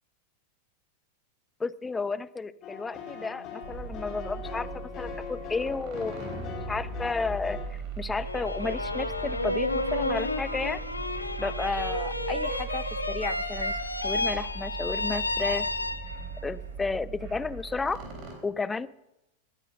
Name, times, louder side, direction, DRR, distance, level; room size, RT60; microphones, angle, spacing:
voice 1, 1.6-4.7 5.0-10.9 11.4-13.8 14.0-15.7 16.4-18.0 18.4-18.9, left 4 dB, 10° left, 18 dB, 0.5 m, -32 dB
sound 1, 2.6-7.7, left 6 dB, 35° left, 3.1 m, -41 dB
sound 2, 3.6-18.3, right 4 dB, 40° right, 3.6 m, -39 dB
sound 3, 8.2-16.4, left 2 dB, 80° left, 0.9 m, -31 dB
19.5 x 9.0 x 5.9 m, 0.92 s
figure-of-eight pair, 90°, 0 cm